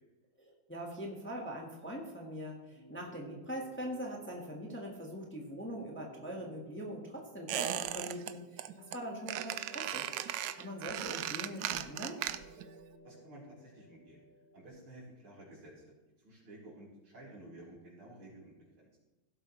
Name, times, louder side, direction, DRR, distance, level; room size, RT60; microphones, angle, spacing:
voice 1, 0.4-8.6 8.9-10.1 10.5-12.2, equal, 5° left, 0 dB, 1.3 m, -42 dB
sound 1, 2.7-14.7, right 2 dB, 50° left, 3.7 m, -57 dB
Squeak, 7.5-8.3 8.6-9.0 9.3-12.7 12.9-13.0, right 12 dB, 75° right, 1.1 m, -37 dB
voice 2, 13.0-14.2 14.5-18.9, right 1 dB, 90° right, -6 dB, 4.7 m, -53 dB
16.5 x 7.8 x 3.2 m, 1.1 s
omnidirectional pair, 2.3 m